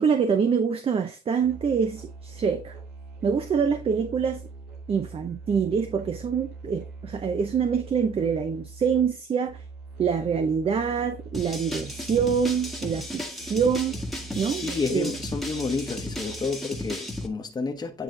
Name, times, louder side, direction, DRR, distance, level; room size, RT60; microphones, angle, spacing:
voice 1, 0.0-2.8 3.2-4.4 4.9-9.6 10.0-13.9 14.4-15.1, right 6 dB, 35° right, 0.7 m, -25 dB
Musical instrument, 1.4-16.7, right 4 dB, 70° right, 2.4 m, -43 dB
sound 1, 11.3-17.3, left 1 dB, ahead, 1.3 m, -35 dB
voice 2, 14.6-18.0, left 4 dB, 25° left, 1.1 m, -30 dB
9.2 x 3.2 x 3.8 m
cardioid pair, 110°, 17 cm